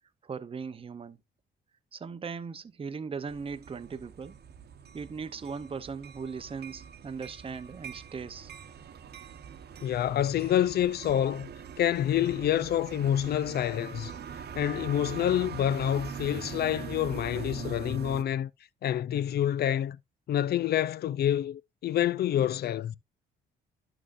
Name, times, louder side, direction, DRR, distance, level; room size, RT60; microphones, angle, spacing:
voice 1, 0.2-1.2 1.9-4.4 4.9-8.5, right 5 dB, 30° right, 0.7 m, -38 dB
sound 1, 3.3-18.2, right 7 dB, 55° right, 1.0 m, -43 dB
voice 2, 9.8-11.5 11.8-14.1 14.6-18.5 18.8-20.0 20.3-23.0, left 11 dB, 55° left, 0.5 m, -27 dB
11.0 x 6.3 x 2.5 m
cardioid pair, 90°, 20 cm